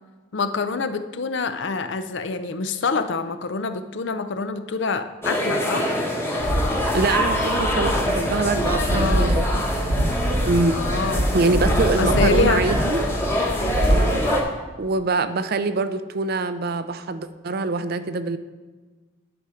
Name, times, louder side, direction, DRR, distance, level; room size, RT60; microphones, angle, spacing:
voice 1, 0.3-5.9 8.9-9.4 10.7-11.3 12.0-12.7 13.6-14.0, left 4 dB, 60° left, 11 dB, 0.5 m, -26 dB
sound 1, 5.2-14.4, left 1 dB, 10° left, 1.1 m, -25 dB
sound 2, 6.4-14.2, right 1 dB, 65° right, 1.0 m, -25 dB
voice 2, 6.9-9.6 10.4-10.8 11.3-13.0 13.9-14.3 14.8-18.4, right 3 dB, 45° right, 12 dB, 0.4 m, -24 dB
10.5 x 4.9 x 5.7 m, 1.3 s
head